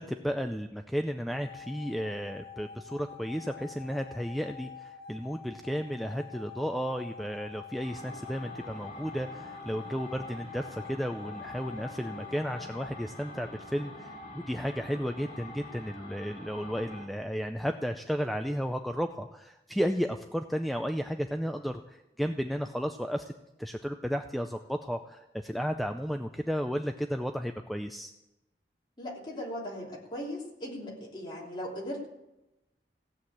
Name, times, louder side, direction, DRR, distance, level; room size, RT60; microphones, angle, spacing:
voice 1, 0.0-14.2 14.5-23.3 23.6-28.1, equal, ahead, 5 dB, 0.4 m, -33 dB
sound 1, 1.3-12.9, left 7 dB, 60° right, 2.1 m, -47 dB
sound 2, 7.8-17.1, left 1 dB, 40° left, 3.0 m, -46 dB
voice 2, 29.0-32.1, equal, 25° left, -3 dB, 3.2 m, -38 dB
15.5 x 7.9 x 8.6 m, 0.96 s
head